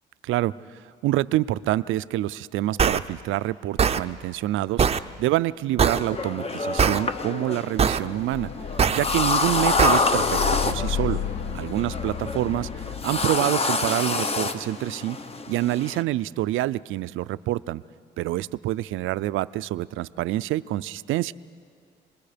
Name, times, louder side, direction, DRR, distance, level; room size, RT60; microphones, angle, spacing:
voice 1, 1.0-8.5 9.0-11.2 11.5-15.2 15.5-17.8 18.2-21.3, right 15 dB, 80° right, 16 dB, 0.4 m, -27 dB
sound 1, 2.8-3.0 3.8-4.0 4.8-5.0 5.8-6.0 6.8-7.0 7.8-8.0 8.8-9.0 9.8-10.0, right 7 dB, 30° right, 0.6 m, -20 dB
sound 2, 5.8-16.0, left 3 dB, 30° left, 1.0 m, -27 dB
sound 3, 8.3-13.4, left 9 dB, 65° left, 0.8 m, -32 dB
26.5 x 21.0 x 5.1 m, 2.2 s
cardioid pair, 90°, 20 cm